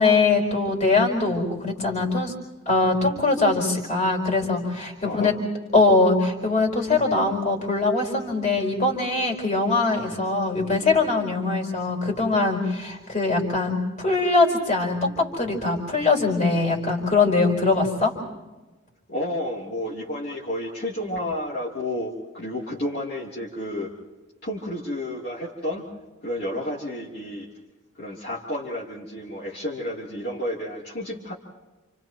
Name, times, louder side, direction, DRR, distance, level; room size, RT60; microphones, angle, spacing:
voice 1, 0.0-2.3 2.7-5.3 5.7-18.1, left 3 dB, 35° left, 0 dB, 4.5 m, -22 dB
voice 2, 5.0-5.3 19.1-23.9 24.4-25.8 26.2-27.5 28.0-31.3, left 1 dB, 50° left, -6 dB, 3.2 m, -31 dB
29.5 x 29.5 x 3.0 m, 1.2 s
head